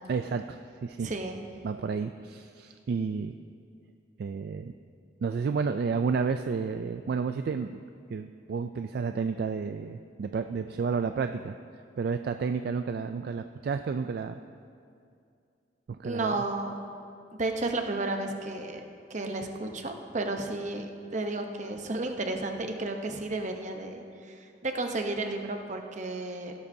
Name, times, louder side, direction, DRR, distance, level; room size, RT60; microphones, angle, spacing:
voice 1, 0.1-1.1 1.6-3.3 4.2-4.7 5.2-7.8 8.1-11.6 12.0-14.4 15.9-16.3, right 5 dB, 60° right, 8 dB, 0.3 m, -31 dB
voice 2, 1.0-1.4 16.0-16.7 17.3-18.8 19.1-26.5, right 2 dB, 45° right, 4 dB, 0.9 m, -32 dB
16.0 x 12.5 x 2.7 m, 2.4 s
head